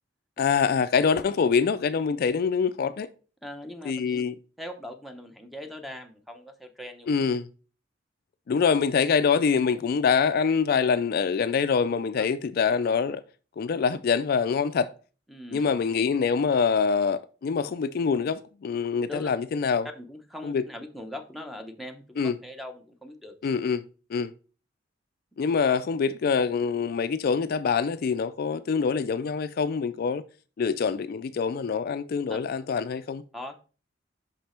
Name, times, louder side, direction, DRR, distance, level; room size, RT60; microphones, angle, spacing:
voice 1, 0.4-3.1 3.8-4.4 7.1-7.5 8.5-13.2 13.6-14.9 15.5-19.9 20.4-20.6 22.2-22.4 23.4-23.8 24.1-24.3 25.4-30.2 30.6-33.2, left 6 dB, 55° left, 0.3 m, -25 dB
voice 2, 3.4-4.2 4.6-7.1 12.2-12.3 15.3-15.7 19.1-19.3 19.9-23.4 32.3-32.4 33.3-33.5, left 1 dB, ahead, 0.7 m, -40 dB
5.7 x 5.3 x 4.3 m
head